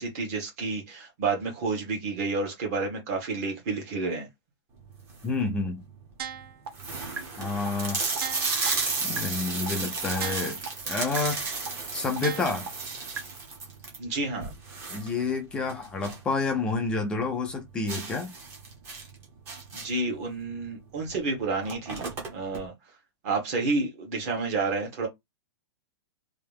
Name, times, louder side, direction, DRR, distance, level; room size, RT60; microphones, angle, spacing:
voice 1, 0.0-4.3 14.0-14.9 19.7-22.7 23.2-25.1, right 3 dB, 30° right, 1.6 m, -30 dB
sound 1, 4.9-5.4 6.0-6.1 6.3-6.4 6.7-16.3 16.6-16.7 17.1-17.2 17.9-20.1 21.1-21.2 21.5-22.6, right 4 dB, 15° right, 0.9 m, -33 dB
voice 2, 5.2-5.8 7.4-8.0 9.0-10.6 10.9-11.4 11.9-12.7 14.9-18.3, left 3 dB, 5° left, 0.3 m, -29 dB
sound 2, 6.2-6.7 7.2-7.3 7.7-7.8 8.2-8.7 9.2-9.3 9.7-9.8 10.2-10.7 11.2-11.3 11.7-11.8 12.2-12.7 13.2-13.3, right 8 dB, 60° right, 1.0 m, -35 dB
3.3 x 2.7 x 3.4 m
hypercardioid pair, 175°, 15 cm